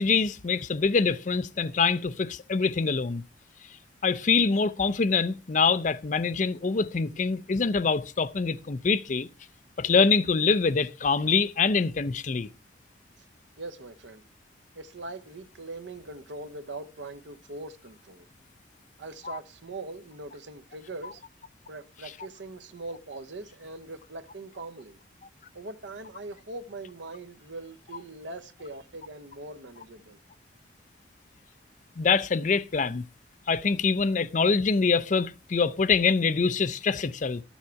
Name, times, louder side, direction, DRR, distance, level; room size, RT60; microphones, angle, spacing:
voice 1, 0.0-3.2 4.0-9.3 9.8-12.5 19.2-19.4 32.0-33.0 33.5-37.4, left 5 dB, 40° left, 0.5 m, -25 dB
voice 2, 13.6-14.2 14.7-18.3 19.0-21.2 21.7-25.0 25.5-30.2, right 2 dB, 75° right, 0.9 m, -41 dB
12.5 x 7.2 x 4.6 m
head